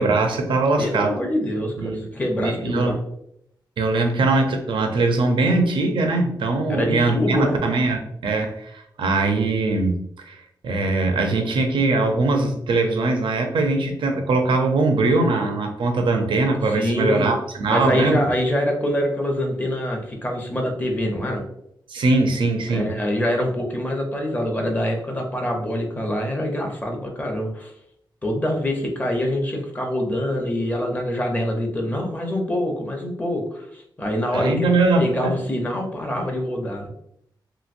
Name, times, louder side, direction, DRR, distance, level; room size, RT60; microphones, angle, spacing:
voice 1, 0.0-1.2 1.8-2.0 2.4-3.0 3.8-18.2 21.9-22.9 34.3-35.3, right 3 dB, 90° right, 4 dB, 0.5 m, -21 dB
voice 2, 0.8-3.0 6.7-7.6 16.7-17.3 17.7-21.4 22.7-27.7 28.2-34.7 35.0-36.9, left 1 dB, 20° left, 1 dB, 0.7 m, -25 dB
2.9 x 2.8 x 2.5 m, 0.73 s
wide cardioid pair, 130°, 8 cm